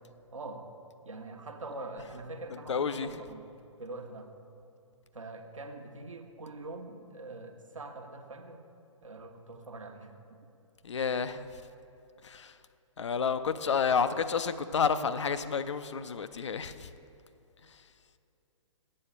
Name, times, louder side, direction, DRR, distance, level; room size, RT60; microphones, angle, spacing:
voice 1, 0.3-0.7 1.0-3.5 3.8-4.3 5.1-8.7 9.0-10.1, right 2 dB, 70° right, 4 dB, 1.0 m, -43 dB
voice 2, 2.7-3.1 10.8-11.6 12.2-12.6 13.0-16.9 17.7-17.8, left 6 dB, 60° left, 11 dB, 0.5 m, -30 dB
7.6 x 7.1 x 6.7 m, 2.7 s
figure-of-eight pair, 120°, 17 cm